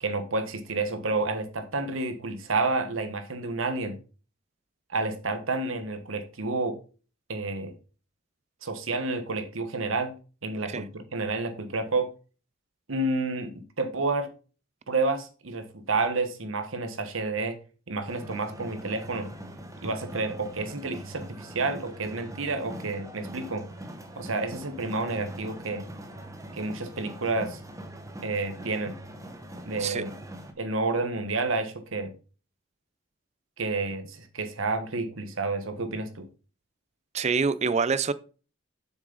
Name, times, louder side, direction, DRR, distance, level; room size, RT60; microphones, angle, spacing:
voice 1, 0.0-4.0 4.9-6.8 7.3-7.7 8.6-10.1 10.4-12.1 12.9-14.3 14.9-17.6 17.9-19.3 19.8-23.6 24.2-25.9 26.5-27.6 28.2-28.9 29.6-30.1 30.6-32.1 33.6-36.2, right 3 dB, 75° right, 1.3 m, -30 dB
sound 1, 18.0-30.5, right 1 dB, 15° right, 1.0 m, -42 dB
voice 2, 37.1-38.1, right 5 dB, 35° right, 0.4 m, -26 dB
7.4 x 6.2 x 4.0 m
head